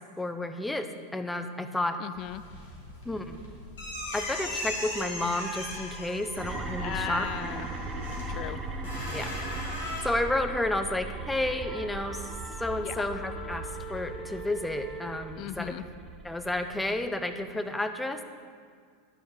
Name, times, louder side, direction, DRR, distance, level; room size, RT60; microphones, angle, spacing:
voice 1, 0.2-2.0 3.0-3.4 4.1-7.3 8.2-8.5 9.1-9.3 10.0-12.2 12.6-15.8 16.2-18.2, left 1 dB, 5° left, 8 dB, 0.7 m, -31 dB
voice 2, 2.0-2.4 6.8-7.7 8.3-8.6 12.8-13.1 15.4-15.8, left 14 dB, 45° left, 14 dB, 0.4 m, -37 dB
sound 1, 2.1-10.0, left 1 dB, 65° left, 3.0 m, -38 dB
sound 2, 6.4-17.1, right 2 dB, 20° right, 1.0 m, -39 dB
Wind instrument woodwind instrument, 11.6-15.3, right 2 dB, 25° left, 1.8 m, -43 dB
11.0 x 9.4 x 4.7 m, 2.1 s
figure-of-eight pair, 85°, 0 cm